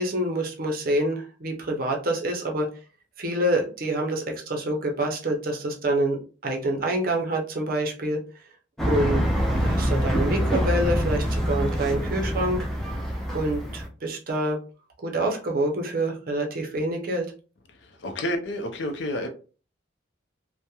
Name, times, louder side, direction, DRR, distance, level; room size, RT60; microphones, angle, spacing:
voice 1, 0.0-2.7 3.2-6.2 6.4-8.2 8.9-9.2 9.6-12.7 13.3-14.6 15.0-17.3, right 1 dB, 50° right, 0.6 m, -26 dB
sound 1, 8.8-13.9, equal, ahead, 0.4 m, -25 dB
voice 2, 17.8-19.3, left 1 dB, 70° left, 0.5 m, -30 dB
2.8 x 2.1 x 2.2 m
head